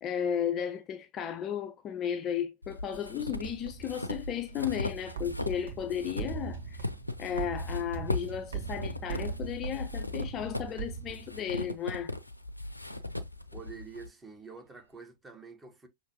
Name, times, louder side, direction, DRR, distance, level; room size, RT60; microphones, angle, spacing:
voice 1, 0.0-6.9 7.2-12.1, left 9 dB, 25° left, 0.5 m, -34 dB
sound 1, 2.6-5.6 5.9-14.1, left 2 dB, 85° left, 0.6 m, -38 dB
sound 2, 2.9-11.7, right 6 dB, 65° right, 1.1 m, -41 dB
voice 2, 13.5-15.9, right 5 dB, 10° right, 1.2 m, -47 dB
6.3 x 2.9 x 2.9 m
figure-of-eight pair, 100°, 0 cm